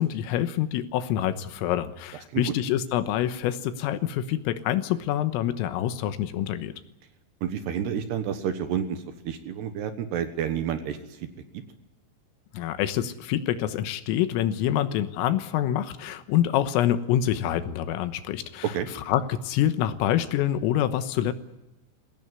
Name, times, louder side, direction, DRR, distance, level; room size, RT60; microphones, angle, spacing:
voice 1, 0.0-6.7 12.5-18.7 19.1-21.3, left 11 dB, 90° left, 11 dB, 3.8 m, -26 dB
voice 2, 7.4-11.3 11.5-11.6 18.7-18.9, right 8 dB, 65° right, 9 dB, 3.0 m, -30 dB
22.5 x 17.5 x 9.5 m, 0.96 s
omnidirectional pair, 5.9 m